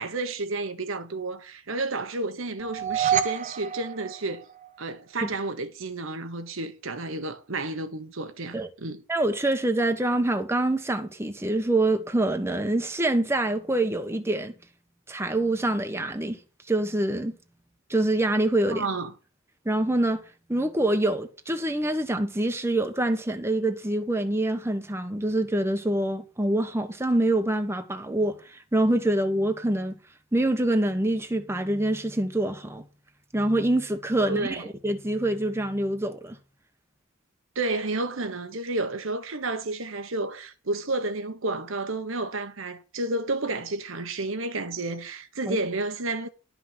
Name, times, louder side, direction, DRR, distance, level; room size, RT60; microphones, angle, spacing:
voice 1, 0.0-4.4 4.8-9.0 18.7-19.1 34.2-34.7 37.5-46.3, right 2 dB, 70° right, 1.2 m, -31 dB
sound 1, 2.6-4.9, right 9 dB, 35° right, 0.9 m, -28 dB
voice 2, 9.1-14.5 15.1-16.4 16.7-17.3 17.9-18.9 19.6-20.2 20.5-29.9 30.3-32.8 33.3-36.4 45.5-45.6, right 1 dB, 10° right, 1.1 m, -25 dB
12.0 x 6.0 x 6.0 m
head